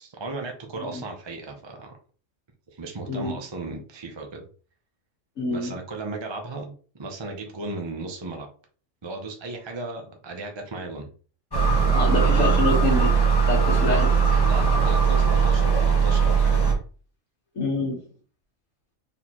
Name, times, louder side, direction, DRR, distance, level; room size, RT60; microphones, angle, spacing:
voice 1, 0.0-1.9 2.7-4.5 5.5-8.5 9.0-11.1 14.5-16.8, right 3 dB, 25° right, 3 dB, 0.6 m, -36 dB
voice 2, 5.4-5.7 11.9-13.1 13.5-14.1 17.6-18.0, left 2 dB, 70° left, -4 dB, 1.8 m, -26 dB
sound 1, 11.5-16.7, right 6 dB, 20° left, 1.1 m, -20 dB
4.4 x 3.7 x 3.0 m, 0.40 s
omnidirectional pair, 1.4 m